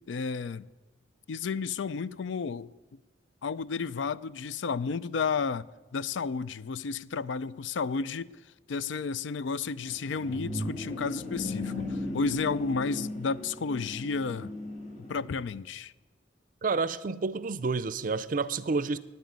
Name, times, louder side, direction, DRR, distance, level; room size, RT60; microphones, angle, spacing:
voice 1, 0.1-0.7 1.3-2.7 3.4-5.7 5.9-8.3 8.7-14.5 15.0-15.9, left 5 dB, 80° left, 0.4 m, -32 dB
sound 1, 9.8-15.4, left 1 dB, 40° left, 2.2 m, -37 dB
voice 2, 16.6-19.0, right 4 dB, 45° right, 0.5 m, -29 dB
9.3 x 9.0 x 9.4 m
head